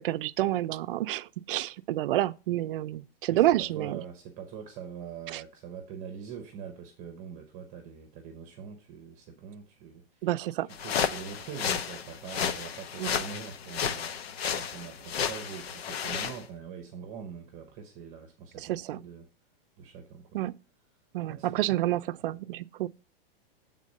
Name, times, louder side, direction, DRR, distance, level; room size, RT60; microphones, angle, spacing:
voice 1, 0.0-4.0 5.3-5.4 10.2-10.7 13.0-13.1 18.6-19.0 20.3-20.6 21.1-22.9, right 14 dB, 60° right, 0.5 m, -29 dB
voice 2, 3.3-10.3 10.7-14.2 14.5-19.3 19.8-20.4 21.3-21.7 22.2-22.4, right 7 dB, 25° right, 0.9 m, -44 dB
sound 1, 10.7-16.4, left 7 dB, 80° left, 1.0 m, -32 dB
8.4 x 3.7 x 6.4 m
supercardioid pair, 160°, 30 cm